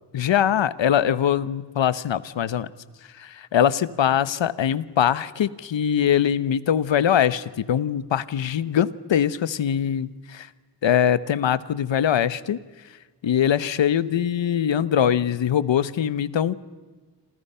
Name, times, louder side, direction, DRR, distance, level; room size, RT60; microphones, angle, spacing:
voice 1, 0.1-2.7 3.1-10.5 10.8-12.6 13.2-16.5, left 9 dB, 85° left, 17 dB, 1.1 m, -22 dB
28.0 x 27.5 x 5.7 m, 1.3 s
wide cardioid pair, 85°, 44 cm